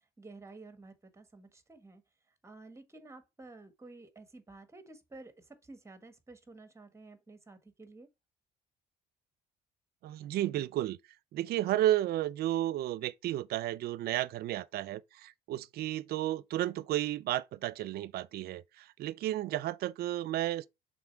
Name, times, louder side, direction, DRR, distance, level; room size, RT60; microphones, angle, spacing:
voice 1, 0.2-2.0 2.4-8.1, right 3 dB, 15° right, 1.4 m, -52 dB
voice 2, 10.0-11.0 11.3-20.7, right 14 dB, 65° right, 0.5 m, -32 dB
6.1 x 4.0 x 4.5 m
cardioid pair, 110°, 17 cm